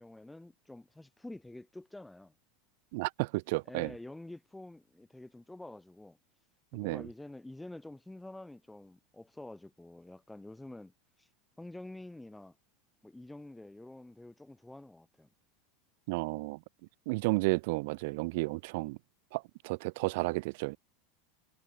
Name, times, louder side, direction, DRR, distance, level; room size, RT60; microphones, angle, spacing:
voice 1, 0.0-2.3 3.7-6.2 6.7-10.9 11.2-11.3 11.6-12.6 13.0-15.3, left 2 dB, 5° left, 2.7 m, -48 dB
voice 2, 2.9-3.9 6.7-7.1 16.1-16.6 17.1-19.0 19.3-20.8, right 25 dB, 60° right, 0.5 m, -32 dB
supercardioid pair, 155°, 0 cm